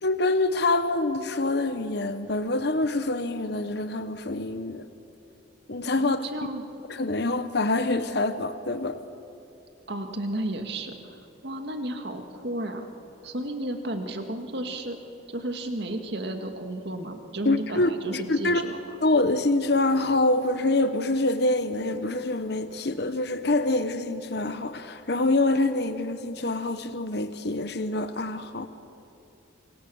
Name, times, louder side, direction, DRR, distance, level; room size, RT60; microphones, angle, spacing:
voice 1, 0.0-4.9 5.7-6.2 6.9-9.0 17.4-18.6 19.0-28.7, left 2 dB, 55° left, 1.0 m, -25 dB
voice 2, 6.0-6.6 9.9-12.9 13.2-15.0 15.3-18.8, right 1 dB, 55° right, 2.1 m, -33 dB
27.5 x 25.5 x 7.1 m
head